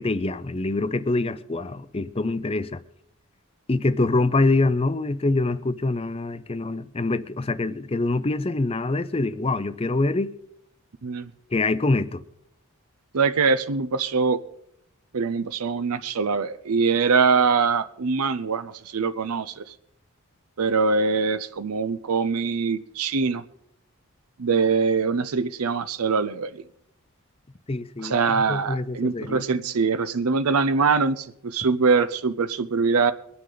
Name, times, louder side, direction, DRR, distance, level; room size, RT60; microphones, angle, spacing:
voice 1, 0.0-2.8 3.7-10.3 11.5-12.2 27.7-29.4, left 2 dB, 25° left, 0.5 m, -25 dB
voice 2, 13.1-14.4 15.1-19.7 20.6-23.4 24.4-26.6 28.0-33.1, right 4 dB, 80° right, 0.6 m, -23 dB
23.0 x 9.5 x 3.9 m
head